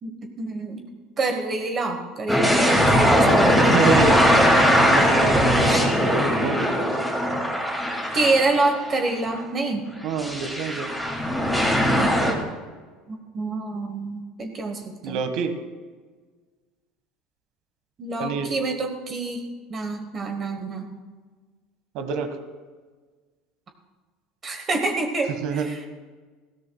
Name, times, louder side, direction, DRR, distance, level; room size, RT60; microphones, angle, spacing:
voice 1, 0.0-0.8 1.2-3.8 5.6-5.8 8.1-9.9 13.1-15.2 18.0-20.9 24.4-25.9, right 2 dB, 20° right, 4 dB, 1.1 m, -27 dB
sound 1, 2.3-8.8 9.3-9.4 10.2-12.3, equal, ahead, 2.2 m, -20 dB
voice 2, 3.7-4.3 4.7-7.1 10.0-10.9 15.0-15.5 18.2-18.5 21.9-22.4 25.4-25.7, right 5 dB, 50° right, 7 dB, 1.5 m, -27 dB
19.0 x 16.5 x 2.3 m, 1.4 s
cardioid pair, 175°, 0 cm